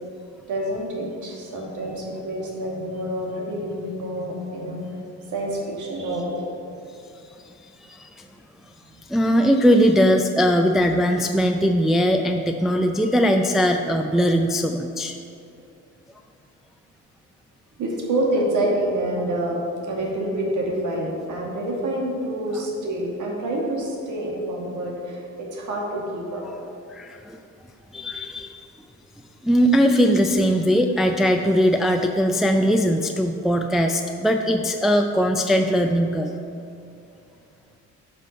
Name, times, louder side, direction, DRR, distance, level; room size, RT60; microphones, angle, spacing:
voice 1, 0.5-4.8 5.3-6.4 17.8-19.6 19.9-26.5, right 1 dB, 75° right, -2 dB, 1.9 m, -27 dB
voice 2, 7.8-8.3 9.1-15.2 26.9-27.4 27.9-28.7 29.4-36.3, equal, ahead, 3 dB, 0.4 m, -20 dB
11.0 x 5.5 x 4.1 m, 2.6 s
cardioid pair, 90°, 30 cm